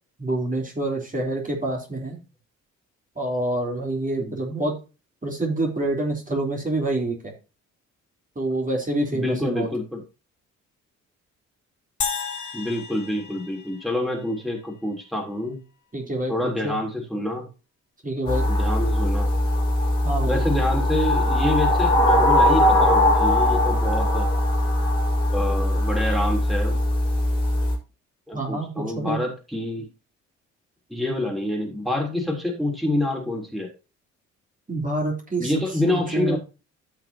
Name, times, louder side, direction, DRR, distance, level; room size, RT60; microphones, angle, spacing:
voice 1, 0.2-2.2 3.2-4.7 5.2-7.3 8.4-9.7 15.9-16.8 18.0-18.5 20.0-20.4 28.3-29.2 34.7-35.5 35.9-36.4, right 2 dB, 20° right, 0 dB, 3.6 m, -27 dB
voice 2, 9.1-10.0 12.5-15.6 16.3-17.4 18.5-19.3 20.3-24.3 25.3-26.8 28.3-29.9 30.9-33.7 35.4-36.4, left 1 dB, ahead, 1 dB, 3.5 m, -27 dB
sound 1, 12.0-14.4, left 6 dB, 45° left, 1.9 m, -33 dB
sound 2, 18.3-27.7, left 1 dB, 75° left, 3.7 m, -20 dB
14.5 x 6.0 x 2.9 m, 0.30 s
figure-of-eight pair, 45°, 39 cm